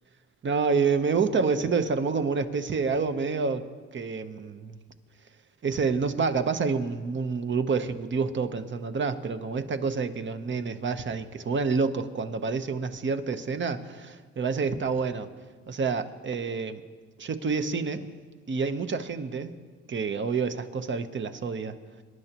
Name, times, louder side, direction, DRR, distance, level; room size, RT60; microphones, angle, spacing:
voice 1, 0.4-3.6 3.9-4.8 5.6-15.3 15.7-16.8 17.2-18.1 18.5-19.5 19.9-21.8, right 5 dB, 40° right, 9 dB, 0.9 m, -28 dB
25.5 x 11.0 x 3.0 m, 1.5 s
cardioid pair, 90°, 30 cm